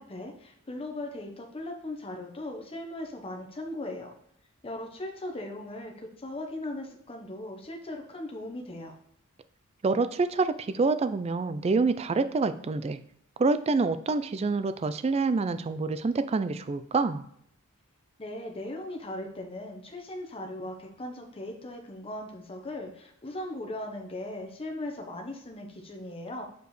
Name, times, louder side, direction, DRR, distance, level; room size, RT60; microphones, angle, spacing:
voice 1, 0.0-4.1 4.6-8.9 18.2-26.4, left 1 dB, 25° left, 1 dB, 0.9 m, -38 dB
voice 2, 9.8-13.0 13.4-17.2, right 3 dB, 30° right, 12 dB, 0.3 m, -27 dB
6.7 x 5.0 x 3.1 m, 0.72 s
head